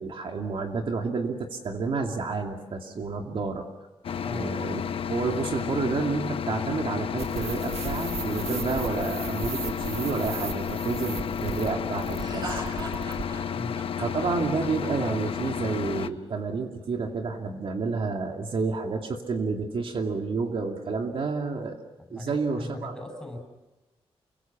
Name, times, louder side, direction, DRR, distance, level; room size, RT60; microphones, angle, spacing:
voice 1, 0.0-3.7 4.3-4.8 5.1-12.6 14.0-21.7 22.1-23.0, right 4 dB, 60° right, 3 dB, 2.5 m, -30 dB
sound 1, 4.0-16.1, left 8 dB, 65° left, 0.8 m, -32 dB
voice 2, 4.2-4.6 13.5-13.8 22.0-23.4, left 1 dB, 5° left, 3 dB, 7.2 m, -39 dB
sound 2, 7.2-13.3, right 6 dB, 80° right, 1.7 m, -37 dB
Laughter, 12.2-16.1, right 1 dB, 40° right, 7.7 m, -39 dB
29.0 x 24.0 x 5.9 m, 1.1 s
wide cardioid pair, 155°, 10 cm